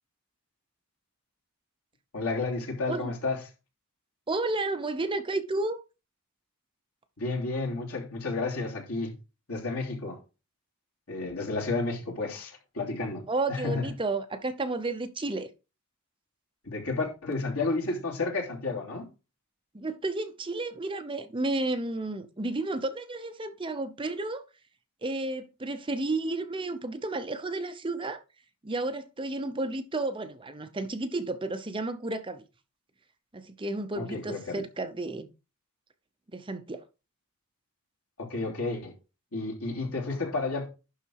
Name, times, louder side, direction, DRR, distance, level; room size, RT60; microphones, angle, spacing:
voice 1, 2.1-3.4 7.2-9.1 9.5-10.2 11.1-13.9 16.6-19.1 34.0-34.6 38.2-38.9 39.3-40.7, left 3 dB, 75° left, 3.2 m, -31 dB
voice 2, 4.3-5.8 13.3-15.5 19.7-24.4 25.0-28.2 28.6-32.4 33.3-35.3 36.3-36.8, right 2 dB, 20° right, 0.7 m, -32 dB
11.5 x 4.0 x 4.7 m
head